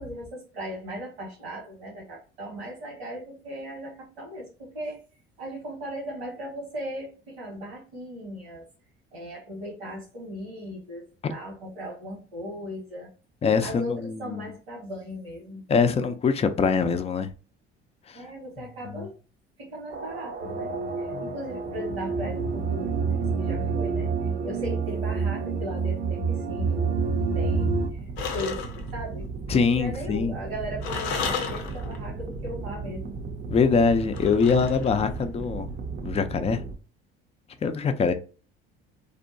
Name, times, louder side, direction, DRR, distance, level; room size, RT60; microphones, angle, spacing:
voice 1, 0.0-5.0 5.4-8.7 9.1-13.1 13.6-15.6 18.1-19.2 19.6-24.1 24.4-28.6 28.9-29.3 29.7-33.2, equal, 90° right, 1.4 m, -38 dB
voice 2, 13.4-14.4 15.7-17.3 18.1-18.2 19.0-19.1 21.1-21.3 29.5-30.3 33.5-35.7 36.0-36.6 37.6-38.1, left 5 dB, 20° left, 0.4 m, -23 dB
sound 1, 19.9-23.8 27.2-36.8, right 4 dB, 35° right, 0.5 m, -37 dB
sound 2, 20.4-27.9, right 4 dB, 70° right, 0.7 m, -27 dB
sound 3, 28.2-28.9 30.8-32.1 34.1-35.2, left 6 dB, 85° left, 0.5 m, -33 dB
2.7 x 2.1 x 2.5 m
hypercardioid pair, 60°, 30 cm